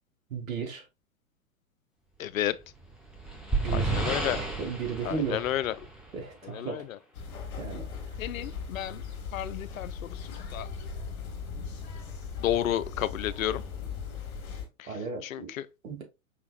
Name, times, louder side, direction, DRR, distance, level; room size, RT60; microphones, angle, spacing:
voice 1, 0.3-0.8 3.6-4.0 4.4-5.5 6.1-6.8 7.5-7.9 14.9-15.5 15.8-16.0, right 5 dB, 65° right, 1.8 m, -35 dB
voice 2, 2.2-2.6 3.7-4.4 5.0-5.7 6.4-6.8 8.2-9.0 9.3-10.2 10.5-10.7 12.4-13.6 14.8-14.9 15.2-15.7, left 12 dB, 70° left, 0.5 m, -31 dB
sound 1, 2.7-6.4, right 3 dB, ahead, 0.8 m, -32 dB
sound 2, 7.1-14.7, left 5 dB, 50° left, 1.7 m, -38 dB
4.9 x 3.5 x 2.3 m
figure-of-eight pair, 105°, 43 cm